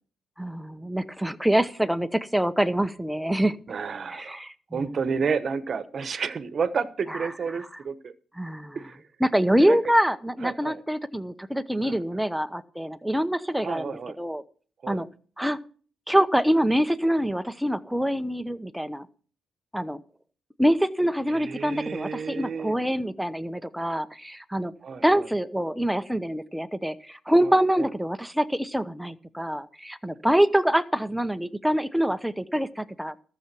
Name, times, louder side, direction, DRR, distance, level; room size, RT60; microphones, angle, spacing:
voice 1, 0.4-3.6 4.1-5.0 7.1-7.2 8.4-8.8 9.2-14.4 14.9-15.1 15.4-15.6 16.1-19.1 19.7-20.0 20.6-24.7 25.0-33.2, equal, ahead, 11 dB, 0.8 m, -25 dB
voice 2, 3.7-4.4 4.7-8.1 8.7-9.0 9.6-9.8 10.4-10.8 11.8-12.2 13.6-14.2 14.8-15.0 21.3-22.7 24.8-25.3 27.4-27.9, right 5 dB, 45° right, 12 dB, 1.1 m, -31 dB
13.5 x 7.0 x 6.0 m, 0.42 s
cardioid pair, 90°, 0 cm